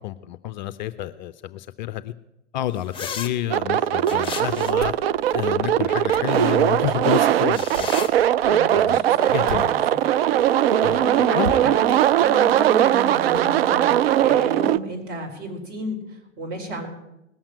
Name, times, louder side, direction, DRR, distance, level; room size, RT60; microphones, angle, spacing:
voice 1, 0.0-2.1 2.5-4.9 5.3-7.9 8.7-9.0 9.3-9.7 10.8-11.7, left 13 dB, 40° left, 12 dB, 0.5 m, -29 dB
sound 1, 2.9-3.3 4.0-4.8 7.4-8.1, left 7 dB, 15° left, 1.4 m, -33 dB
sound 2, 3.5-14.8, right 11 dB, 55° right, 0.5 m, -20 dB
sound 3, 4.5-10.2 10.5-10.6 10.9-11.0 11.4-13.5, right 3 dB, 80° right, 1.8 m, -40 dB
voice 2, 8.4-9.8 10.8-16.9, equal, 40° right, 1 dB, 5.3 m, -32 dB
19.0 x 7.3 x 9.1 m, 0.90 s
figure-of-eight pair, 100°, 37 cm